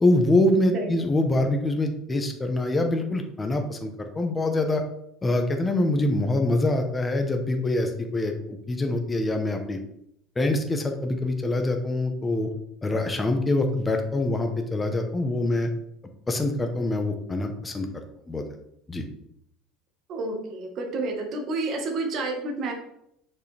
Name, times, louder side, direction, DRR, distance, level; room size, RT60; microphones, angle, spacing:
voice 1, 0.0-4.8 5.2-8.3 8.7-9.8 10.4-12.5 12.8-15.7 16.3-17.9 18.3-18.4 18.9-19.0, left 2 dB, 15° left, 4 dB, 0.9 m, -24 dB
voice 2, 20.1-22.7, right 2 dB, 45° right, 1 dB, 1.4 m, -30 dB
6.7 x 5.4 x 3.4 m, 0.75 s
cardioid pair, 140°, 0 cm